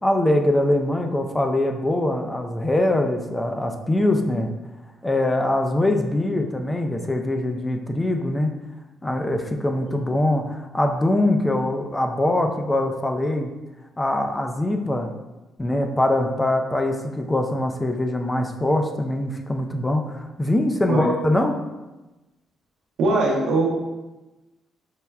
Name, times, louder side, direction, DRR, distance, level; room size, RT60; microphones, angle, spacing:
voice 1, 0.0-4.5 5.0-8.5 9.0-13.5 14.0-15.1 15.6-21.6, left 1 dB, 15° left, 4 dB, 0.4 m, -23 dB
voice 2, 23.0-23.7, right 2 dB, 80° right, -2 dB, 0.7 m, -20 dB
5.5 x 2.1 x 2.3 m, 1.1 s
cardioid pair, 90°, 0 cm